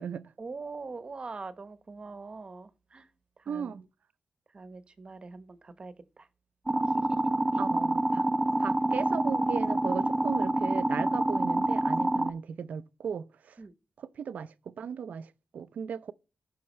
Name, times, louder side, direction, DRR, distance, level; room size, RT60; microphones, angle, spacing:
voice 1, 0.4-3.1 3.4-3.7 4.5-6.3 7.1-7.2 7.5-7.6 13.6-13.7, right 4 dB, 40° right, 1.0 m, -43 dB
voice 2, 3.5-3.8 7.6-8.3 8.6-13.6 14.0-14.5 14.8-16.1, right 7 dB, 80° right, 0.5 m, -36 dB
sound 1, 6.7-12.3, right 1 dB, 15° right, 0.8 m, -27 dB
15.0 x 5.6 x 3.1 m
wide cardioid pair, 95°, 3 cm